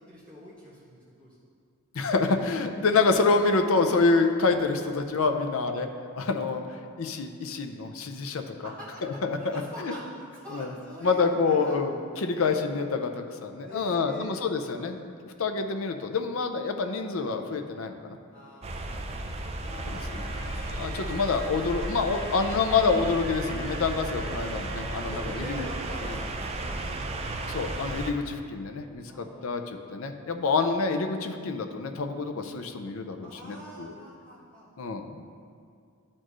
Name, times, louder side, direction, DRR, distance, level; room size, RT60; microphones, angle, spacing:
voice 1, 0.0-1.4 5.4-5.5 6.7-6.8 8.6-12.5 13.6-14.3 18.3-19.5 24.9-27.4 29.1-29.7 33.2-34.7, equal, 5° left, -11 dB, 1.7 m, -45 dB
voice 2, 1.9-5.9 6.2-6.6 7.0-8.7 9.0-9.9 10.5-10.7 11.0-18.2 19.9-20.3 20.7-25.6 26.0-26.2 27.5-33.9 34.8-35.2, left 4 dB, 65° left, 6 dB, 0.5 m, -27 dB
sound 1, 18.6-28.1, right 2 dB, 30° right, 0.4 m, -34 dB
sound 2, 19.6-26.0, equal, 20° left, 1.8 m, -44 dB
12.0 x 4.3 x 3.1 m, 2.3 s
head